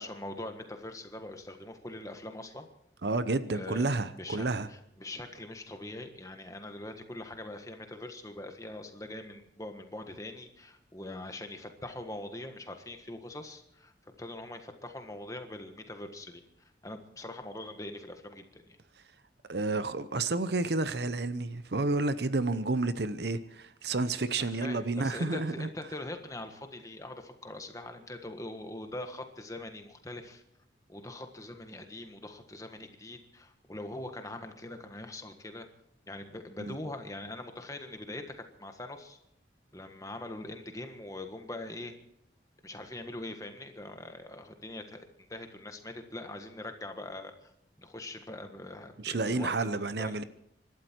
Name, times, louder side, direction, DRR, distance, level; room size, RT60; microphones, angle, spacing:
voice 1, 0.0-2.7 3.5-13.9 14.2-16.4 16.8-18.6 24.4-30.4 30.9-35.7 36.1-39.2 39.7-41.9 42.6-45.0 45.3-47.5 47.8-49.7 50.0-50.2, left 1 dB, 20° left, 1.5 m, -42 dB
voice 2, 3.0-4.7 19.5-25.7 36.6-36.8 49.0-50.2, right 3 dB, 65° right, 0.8 m, -30 dB
25.5 x 12.5 x 4.5 m
head